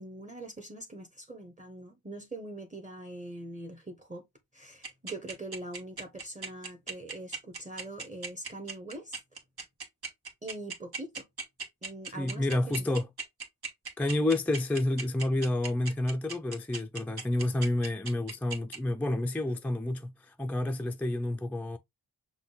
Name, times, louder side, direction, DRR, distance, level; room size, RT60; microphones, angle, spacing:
voice 1, 0.0-4.2 4.5-9.2 10.4-11.2 11.8-12.8, right 2 dB, 15° right, 0.9 m, -43 dB
sound 1, 4.8-18.8, right 4 dB, 60° right, 1.3 m, -37 dB
voice 2, 12.2-13.1 14.0-21.8, left 1 dB, 5° left, 0.3 m, -29 dB
5.9 x 2.2 x 3.8 m
wide cardioid pair, 70°, 42 cm